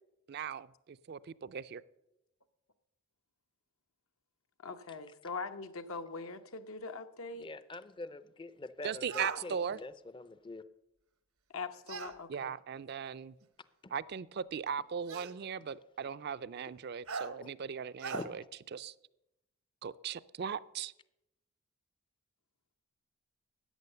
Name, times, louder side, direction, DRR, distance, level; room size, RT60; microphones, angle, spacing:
voice 1, 0.3-1.8 8.8-9.8 12.3-13.4 13.9-18.4 18.7-18.9 19.8-20.9, right 7 dB, 50° right, 15 dB, 0.4 m, -38 dB
voice 2, 4.6-7.5 11.5-12.5, left 4 dB, 80° left, 8 dB, 0.9 m, -42 dB
voice 3, 7.4-10.6 17.4-17.5 18.1-18.2, left 2 dB, 25° left, 15 dB, 0.4 m, -45 dB
sound 1, 9.1-9.4 11.9-12.2 13.4-13.5 15.1-15.4 17.1-17.3 18.0-18.3, right 4 dB, 85° right, 1.0 m, -39 dB
13.5 x 8.9 x 6.7 m, 0.89 s
head